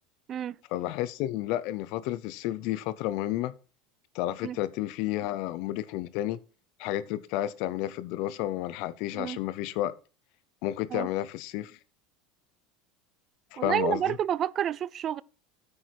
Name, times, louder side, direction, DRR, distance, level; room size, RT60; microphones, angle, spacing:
voice 1, 0.7-3.5 4.1-6.4 6.8-9.9 10.6-11.8 13.5-14.0, left 14 dB, 55° left, 0.6 m, -31 dB
voice 2, 13.6-15.2, right 10 dB, 30° right, 0.4 m, -29 dB
9.2 x 8.6 x 4.6 m
cardioid pair, 165°, 0 cm